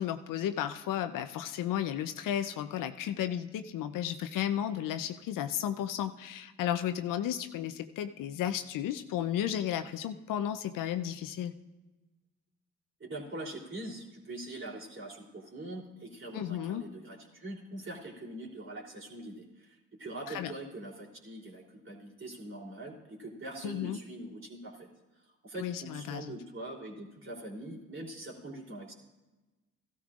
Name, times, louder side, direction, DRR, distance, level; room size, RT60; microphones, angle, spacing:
voice 1, 0.0-11.5 16.3-16.8 20.3-20.5 23.6-24.0 25.6-26.3, left 10 dB, 70° left, 10 dB, 0.7 m, -33 dB
voice 2, 13.0-24.9 25.2-28.9, right 1 dB, 35° right, -2 dB, 3.3 m, -43 dB
15.0 x 13.0 x 2.5 m, 1.1 s
supercardioid pair, 60°, 34 cm